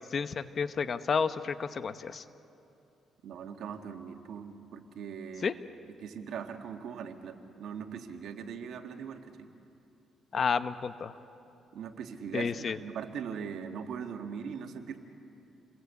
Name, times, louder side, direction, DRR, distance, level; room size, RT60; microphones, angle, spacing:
voice 1, 0.1-2.2 5.4-5.5 10.3-11.1 12.3-12.8, left 6 dB, 45° left, 12 dB, 0.9 m, -31 dB
voice 2, 3.2-5.6 6.0-9.5 11.7-15.0, right 7 dB, 75° right, 5 dB, 1.9 m, -40 dB
28.5 x 21.0 x 8.4 m, 2.8 s
cardioid pair, 90°, 0 cm